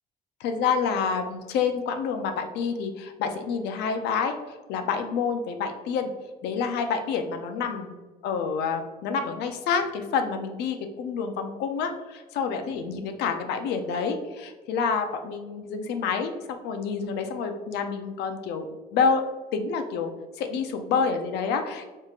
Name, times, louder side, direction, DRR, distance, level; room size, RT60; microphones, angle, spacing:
voice 1, 0.4-6.1 6.4-8.0 8.2-19.2 19.5-21.9, left 5 dB, 80° left, 6 dB, 0.5 m, -28 dB
4.1 x 3.7 x 2.4 m, 1.3 s
cardioid pair, 110°, 17 cm